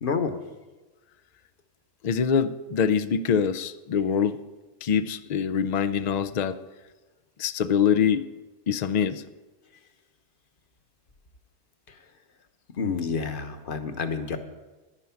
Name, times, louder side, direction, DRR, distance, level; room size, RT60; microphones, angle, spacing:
voice 1, 0.0-0.3 12.8-14.4, left 5 dB, 45° left, 8 dB, 1.1 m, -28 dB
voice 2, 2.0-4.4 4.8-6.6 7.4-8.3 8.7-9.2, left 7 dB, 85° left, 12 dB, 0.3 m, -24 dB
10.5 x 9.9 x 5.8 m, 1.2 s
omnidirectional pair, 1.3 m